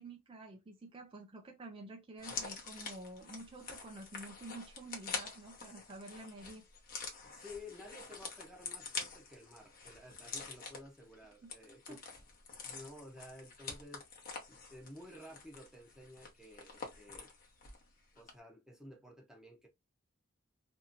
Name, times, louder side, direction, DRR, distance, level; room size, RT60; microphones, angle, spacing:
voice 1, 0.0-6.6 11.4-11.5 11.9-12.0, right 2 dB, 25° right, 0.4 m, -49 dB
sound 1, 2.2-17.9 18.2-18.3, left 4 dB, 45° left, 0.8 m, -46 dB
voice 2, 7.2-12.0 12.6-17.3 18.1-19.7, left 1 dB, 5° right, 0.9 m, -53 dB
2.7 x 2.6 x 2.7 m
head